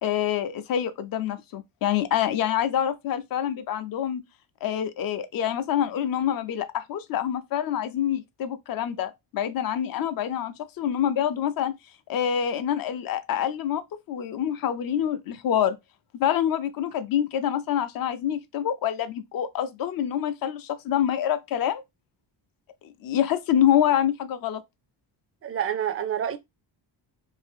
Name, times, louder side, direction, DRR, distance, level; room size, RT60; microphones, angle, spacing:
voice 1, 0.0-4.2 4.6-11.8 12.1-15.8 16.1-21.8 22.8-24.6, left 10 dB, 50° left, 0.5 m, -26 dB
voice 2, 25.4-26.4, right 9 dB, 35° right, 0.4 m, -28 dB
2.6 x 2.6 x 3.4 m
cardioid pair, 125°, 45 cm